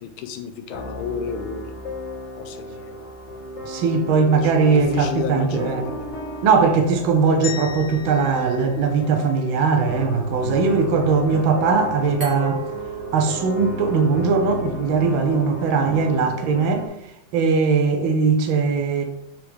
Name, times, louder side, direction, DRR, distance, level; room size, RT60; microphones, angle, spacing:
voice 1, 0.0-1.8 2.4-3.1 4.4-6.1, left 7 dB, 90° left, 1.5 m, -32 dB
sound 1, 0.7-16.9, left 1 dB, 35° left, 1.6 m, -34 dB
voice 2, 3.6-5.9 6.4-12.6 13.1-16.9 17.3-19.0, right 5 dB, 80° right, 1.5 m, -20 dB
sound 2, 7.4-9.7, left 9 dB, 50° left, 1.1 m, -36 dB
Glass, 12.2-15.0, right 6 dB, 35° right, 2.0 m, -37 dB
6.9 x 4.8 x 3.5 m
omnidirectional pair, 2.3 m